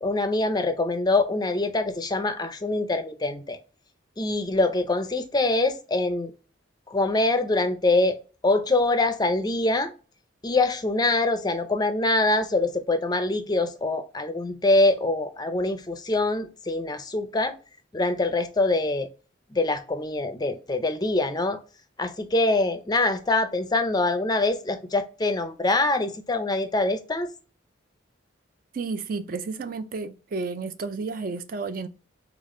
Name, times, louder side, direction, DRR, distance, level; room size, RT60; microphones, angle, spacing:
voice 1, 0.0-3.6 4.2-6.3 6.9-9.9 10.4-17.6 17.9-19.1 19.5-21.6 22.0-27.3, left 2 dB, 20° left, 0.4 m, -24 dB
voice 2, 28.7-31.9, right 4 dB, 45° right, 0.4 m, -32 dB
4.1 x 3.5 x 3.6 m
head